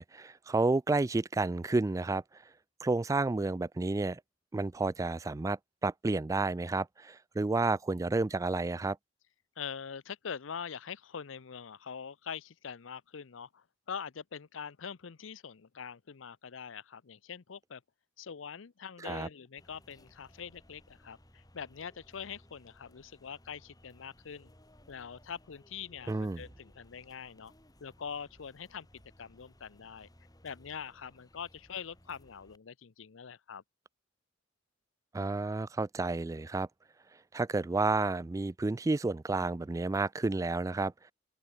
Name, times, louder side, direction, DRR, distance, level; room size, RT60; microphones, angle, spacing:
voice 1, 0.0-2.2 2.8-4.2 4.5-9.0 19.0-19.3 26.1-26.4 35.1-36.7 37.3-41.1, right 3 dB, 15° right, 0.3 m, -31 dB
voice 2, 9.6-17.8 18.2-24.5 24.9-27.5 27.8-30.1 30.4-33.6, left 7 dB, 90° left, 0.6 m, -44 dB
sound 1, 19.6-32.6, left 1 dB, 20° left, 6.1 m, -61 dB
open air
head